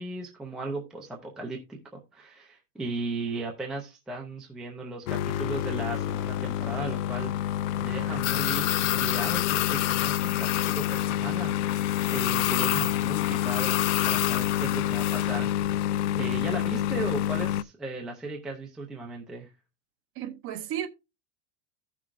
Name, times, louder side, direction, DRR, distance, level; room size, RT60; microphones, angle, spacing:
voice 1, 0.0-19.5, right 2 dB, ahead, 0.4 m, -37 dB
sound 1, 5.1-17.6, left 12 dB, 60° left, 0.5 m, -27 dB
voice 2, 20.2-20.9, right 10 dB, 30° right, 0.8 m, -33 dB
15.0 x 6.0 x 2.4 m
supercardioid pair, 175°, 40 cm